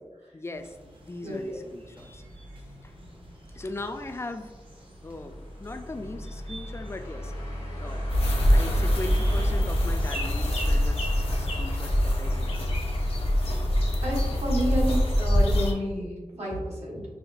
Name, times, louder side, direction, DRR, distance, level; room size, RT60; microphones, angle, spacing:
voice 1, 0.3-2.2 2.5-2.9 3.5-4.6 5.0-8.2 8.5-12.8, left 2 dB, 20° left, 6 dB, 0.3 m, -39 dB
sound 1, 0.5-15.0, right 1 dB, 50° right, 0.8 m, -50 dB
voice 2, 1.2-1.6 14.0-17.1, equal, 70° right, -4 dB, 1.2 m, -30 dB
sound 2, 2.0-14.2, equal, 90° left, 1.3 m, -34 dB
sound 3, 8.1-15.7, left 1 dB, 55° left, 0.7 m, -25 dB
5.5 x 2.0 x 2.5 m, 1.2 s
wide cardioid pair, 55°, 12 cm